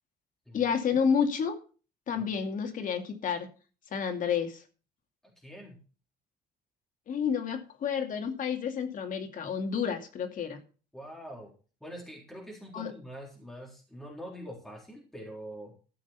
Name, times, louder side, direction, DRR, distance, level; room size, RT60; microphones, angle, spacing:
voice 1, 0.5-1.6 2.1-3.5 3.9-4.6 7.1-10.6 12.7-12.9, left 7 dB, 50° left, 5 dB, 2.5 m, -30 dB
voice 2, 5.2-5.8 10.9-11.5 11.8-15.7, equal, ahead, -2 dB, 3.8 m, -44 dB
14.0 x 6.4 x 5.8 m, 0.37 s
cardioid pair, 110°, 17 cm